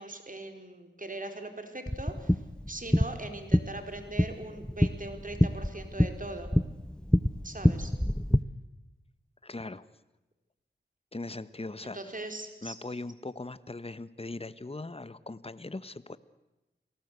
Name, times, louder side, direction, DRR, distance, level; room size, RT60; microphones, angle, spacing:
voice 1, 0.0-2.4 2.7-6.5 7.4-7.9 11.8-12.8, right 2 dB, 45° right, 6 dB, 4.3 m, -40 dB
sound 1, 1.9-8.4, equal, 5° left, 0.8 m, -27 dB
voice 2, 9.4-9.9 11.1-12.0 12.6-16.2, left 2 dB, 30° left, 15 dB, 1.2 m, -40 dB
28.5 x 18.5 x 8.2 m, 1.0 s
cardioid pair, 45°, 20 cm